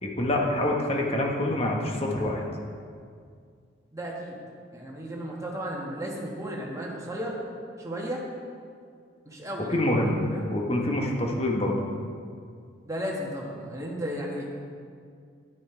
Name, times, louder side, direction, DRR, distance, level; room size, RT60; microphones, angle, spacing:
voice 1, 0.0-2.4 9.7-10.2 10.5-11.8, left 1 dB, 30° left, 0 dB, 1.2 m, -26 dB
voice 2, 3.9-4.3 4.7-7.4 7.8-8.2 9.2-9.7 10.3-10.5 12.8-14.5, equal, 15° right, -3 dB, 1.5 m, -34 dB
9.7 x 9.3 x 4.5 m, 2.2 s
head